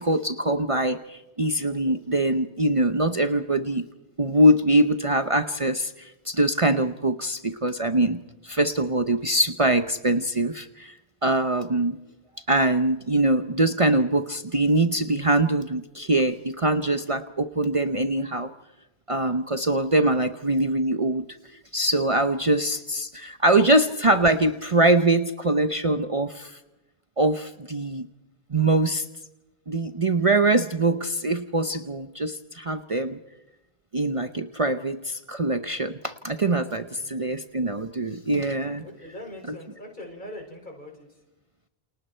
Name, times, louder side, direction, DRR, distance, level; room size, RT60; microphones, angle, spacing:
voice 1, 0.0-3.8 4.2-10.9 11.2-12.0 12.5-18.5 19.1-21.2 21.7-26.6 27.2-28.1 28.5-29.1 29.7-33.2 33.9-38.8, right 1 dB, 35° right, 9 dB, 0.9 m, -23 dB
voice 2, 36.8-37.2 38.8-41.2, left 1 dB, 50° left, 1 dB, 6.4 m, -42 dB
29.0 x 28.5 x 4.5 m, 0.94 s
omnidirectional pair, 1.0 m